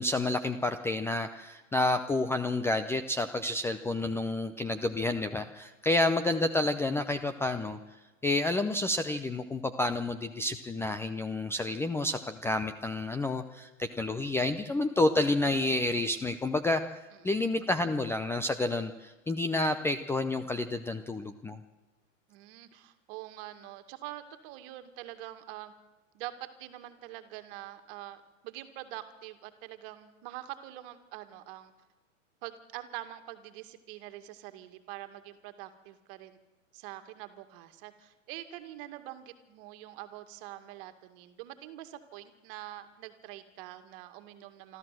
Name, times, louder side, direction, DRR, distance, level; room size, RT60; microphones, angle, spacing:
voice 1, 0.0-7.8 8.2-16.8 17.2-21.6, left 2 dB, 5° left, 9 dB, 0.5 m, -29 dB
voice 2, 22.3-25.7 26.1-31.7 32.4-36.4 36.7-44.8, right 14 dB, 45° right, 8 dB, 2.2 m, -45 dB
25.5 x 13.5 x 7.7 m, 1.2 s
hypercardioid pair, 120°, 38 cm